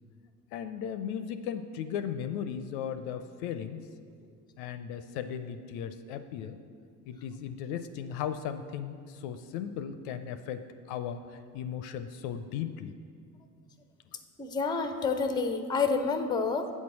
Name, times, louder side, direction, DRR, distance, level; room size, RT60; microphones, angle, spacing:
voice 1, 0.5-3.8 4.6-6.6 7.1-13.0, left 8 dB, 55° left, 10 dB, 0.5 m, -36 dB
voice 2, 14.4-16.7, left 4 dB, 10° left, 8 dB, 0.5 m, -28 dB
8.3 x 4.5 x 7.0 m, 2.1 s
figure-of-eight pair, 60°, 49 cm